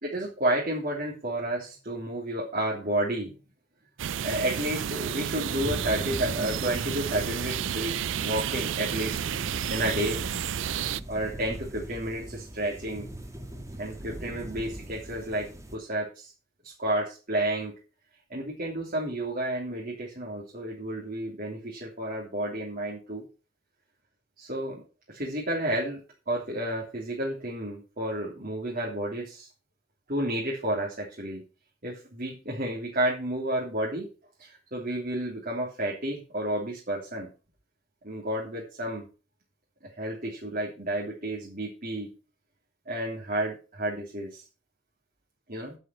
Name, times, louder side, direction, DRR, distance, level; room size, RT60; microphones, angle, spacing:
voice 1, 0.0-3.3 4.2-9.2 9.7-10.2 11.1-13.1 13.8-16.3 16.6-17.7 18.3-23.2 24.4-26.0 26.3-29.5 30.1-31.4 31.8-34.1 34.4-37.3 38.0-39.1 40.0-42.1 42.9-44.5 45.5-45.8, right 1 dB, 50° right, -4 dB, 3.4 m, -31 dB
sound 1, 4.0-11.0, right 9 dB, 90° right, 0.4 m, -31 dB
sound 2, 5.6-15.8, right 1 dB, 15° right, 1.8 m, -40 dB
8.9 x 7.9 x 5.9 m, 0.34 s
head